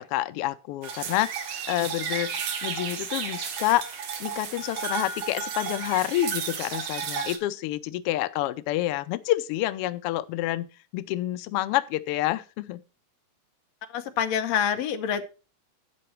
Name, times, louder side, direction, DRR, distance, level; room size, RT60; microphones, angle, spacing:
voice 1, 0.0-3.9 4.2-12.8, left 15 dB, 85° left, 1.3 m, -28 dB
sound 1, 0.8-7.4, right 7 dB, 75° right, 2.7 m, -33 dB
voice 2, 13.9-15.2, left 8 dB, 70° left, 2.2 m, -26 dB
11.0 x 7.7 x 4.5 m
omnidirectional pair, 3.3 m